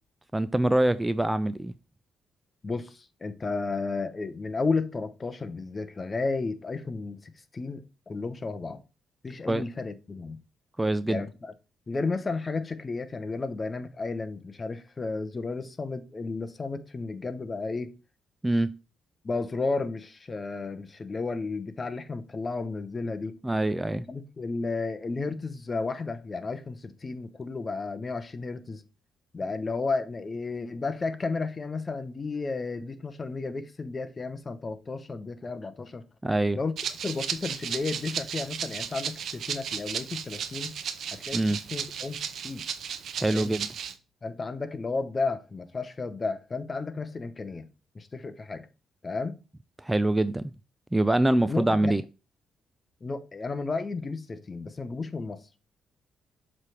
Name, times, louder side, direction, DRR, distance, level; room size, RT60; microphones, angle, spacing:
voice 1, 0.3-1.7 9.5-9.6 10.8-11.2 18.4-18.8 23.4-24.0 36.2-36.6 41.3-41.6 43.2-43.7 49.8-50.5 50.9-52.0, right 1 dB, 10° right, 0.3 m, -24 dB
voice 2, 2.6-8.8 9.2-10.4 11.1-11.5 11.9-18.0 19.2-23.4 24.1-28.8 29.3-36.0 36.5-36.7 37.0-40.7 41.1-41.4 41.7-42.7 43.3-43.5 44.2-47.7 47.9-48.7 49.0-49.4 51.5-51.9 53.0-55.4, left 3 dB, 30° left, 0.8 m, -33 dB
Rattle (instrument), 36.8-43.9, right 7 dB, 65° right, 0.7 m, -35 dB
7.2 x 3.3 x 4.9 m
cardioid pair, 90°, 0 cm